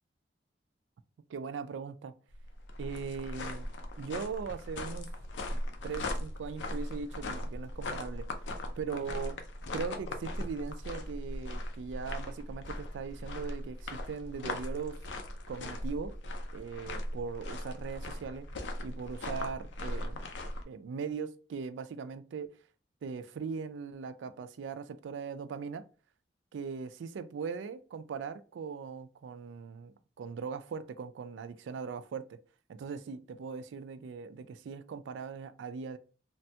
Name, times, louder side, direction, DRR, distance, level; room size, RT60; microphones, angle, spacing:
voice 1, 1.3-2.1 2.8-3.7 4.0-5.1 5.5-8.3 8.8-9.4 9.7-15.0 15.5-16.2 16.5-18.4 18.8-20.3 20.6-22.5 23.0-25.8 26.5-32.4 32.7-36.0, right 5 dB, 90° right, 0.3 m, -40 dB
sound 1, 2.3-20.6, left 1 dB, 85° left, 0.5 m, -39 dB
3.2 x 2.2 x 2.7 m
head